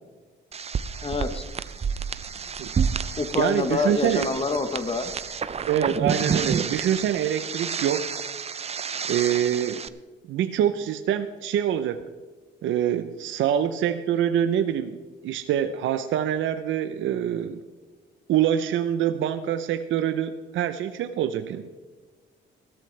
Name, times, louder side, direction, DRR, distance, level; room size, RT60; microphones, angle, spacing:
sound 1, 0.5-9.9, right 6 dB, 30° right, 0.6 m, -30 dB
voice 1, 1.0-1.4 3.2-5.1, left 3 dB, 30° left, 9 dB, 0.9 m, -26 dB
voice 2, 3.4-4.3 5.7-8.1 9.1-9.9 10.3-12.0 12.6-17.6 18.3-21.7, right 10 dB, 75° right, 10 dB, 0.7 m, -25 dB
15.5 x 13.5 x 3.3 m, 1.3 s
cardioid pair, 90°, 20 cm